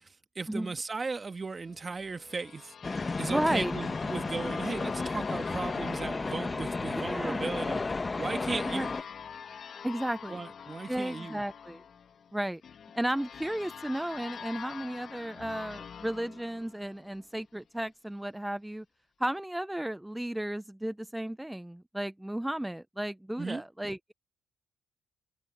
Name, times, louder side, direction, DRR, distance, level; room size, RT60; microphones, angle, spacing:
voice 1, 0.0-2.7 3.2-7.8 8.2-8.9 10.3-11.4 23.4-23.6, right 4 dB, 30° right, 2.0 m, -36 dB
sound 1, 1.6-17.3, left 7 dB, 55° left, 1.6 m, -46 dB
sound 2, 2.8-9.0, left 3 dB, 25° left, 1.2 m, -33 dB
voice 2, 3.3-3.7 6.9-7.4 8.7-8.9 9.8-10.4 10.9-11.8 12.3-12.6 12.9-18.8 19.2-24.1, right 1 dB, 5° right, 0.5 m, -33 dB
cardioid pair, 90°, 0 cm